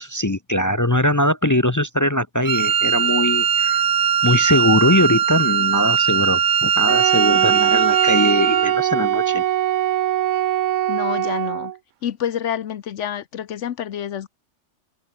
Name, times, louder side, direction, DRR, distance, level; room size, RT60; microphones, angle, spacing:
voice 1, 0.0-3.9 4.2-9.4, left 1 dB, 20° left, 0.6 m, -21 dB
Wind instrument woodwind instrument, 2.5-8.8, right 8 dB, 50° right, 0.9 m, -20 dB
Wind instrument woodwind instrument 2, 6.9-11.8, right 12 dB, 80° right, 1.0 m, -21 dB
voice 2, 10.9-11.7 12.0-14.3, left 9 dB, 75° left, 1.1 m, -28 dB
omnidirectional pair, 1.3 m